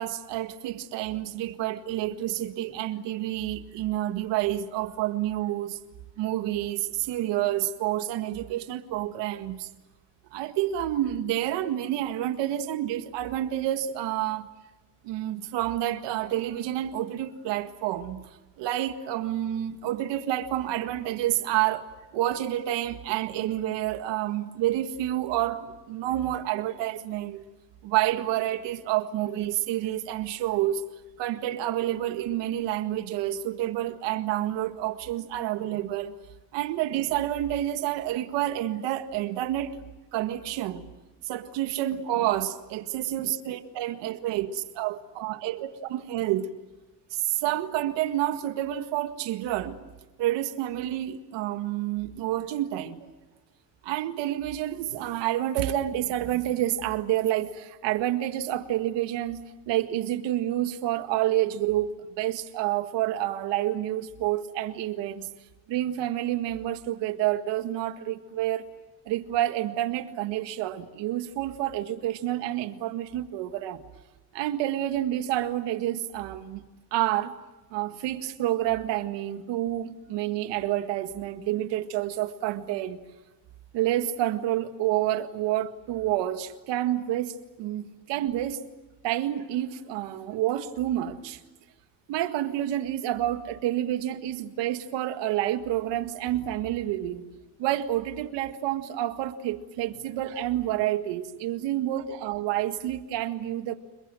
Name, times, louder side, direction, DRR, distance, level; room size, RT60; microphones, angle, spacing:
voice 1, 0.0-5.8 6.2-9.7 10.3-14.5 15.0-18.2 18.6-21.9 22.1-27.4 27.8-30.8 31.2-36.1 36.5-39.8 40.1-40.9 41.2-46.5 47.1-49.8 50.2-53.1 53.8-65.3 65.7-68.6 69.1-73.8 74.3-76.6 76.9-77.3 77.7-83.0 83.7-88.6 89.0-91.4 92.1-97.2 97.6-103.8, right 13 dB, 80° right, 1.9 m, -29 dB
30.0 x 22.0 x 7.7 m
cardioid pair, 120°, 42 cm